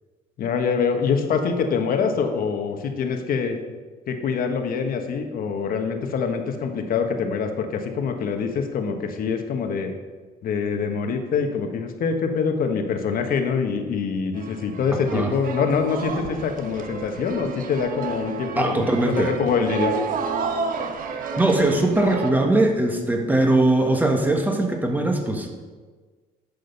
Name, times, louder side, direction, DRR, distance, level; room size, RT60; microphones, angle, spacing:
voice 1, 0.4-3.6 4.1-9.9 10.4-19.9, left 5 dB, 60° left, 5 dB, 1.4 m, -25 dB
sound 1, 14.3-22.3, right 5 dB, 55° right, 1.1 m, -31 dB
voice 2, 18.6-19.3 21.2-25.5, right 2 dB, 10° right, 3 dB, 1.5 m, -21 dB
11.0 x 6.5 x 5.4 m, 1.4 s
cardioid pair, 110°, 17 cm